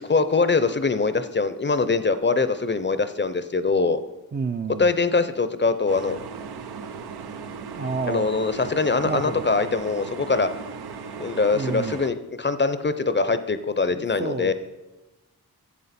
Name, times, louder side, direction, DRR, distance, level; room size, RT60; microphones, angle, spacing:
voice 1, 0.0-4.0 4.8-6.2 8.1-10.5 11.2-14.5, left 4 dB, 30° left, 12 dB, 0.5 m, -23 dB
voice 2, 4.3-4.9 7.7-8.3 9.0-9.4 11.5-12.0 13.9-14.5, right 4 dB, 30° right, 8 dB, 0.4 m, -29 dB
sound 1, 5.9-12.1, right 5 dB, 90° right, 0.6 m, -37 dB
9.5 x 7.4 x 4.1 m, 1.0 s
cardioid pair, 50°, 37 cm